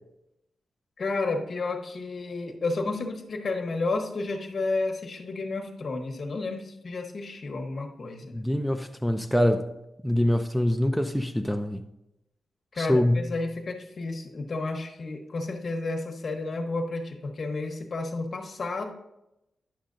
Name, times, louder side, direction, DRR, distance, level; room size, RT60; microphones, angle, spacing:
voice 1, 1.0-8.4 12.7-18.9, left 3 dB, 40° left, 1.0 m, -31 dB
voice 2, 8.3-9.7 10.0-11.8 12.8-13.3, left 1 dB, ahead, 0.3 m, -24 dB
10.0 x 6.5 x 2.5 m
wide cardioid pair, 160°, 0 cm